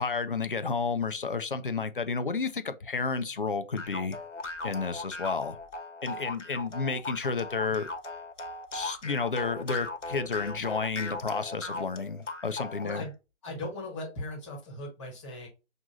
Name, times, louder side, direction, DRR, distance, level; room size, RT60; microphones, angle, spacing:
voice 1, 0.0-4.2 4.6-5.6 6.0-7.9 8.7-13.1, left 4 dB, 45° left, 0.5 m, -31 dB
sound 1, 3.8-13.1, left 2 dB, 75° left, 1.1 m, -38 dB
voice 2, 12.8-13.1 13.4-15.5, left 2 dB, 5° left, 1.2 m, -38 dB
6.2 x 2.6 x 2.6 m
figure-of-eight pair, 150°, 37 cm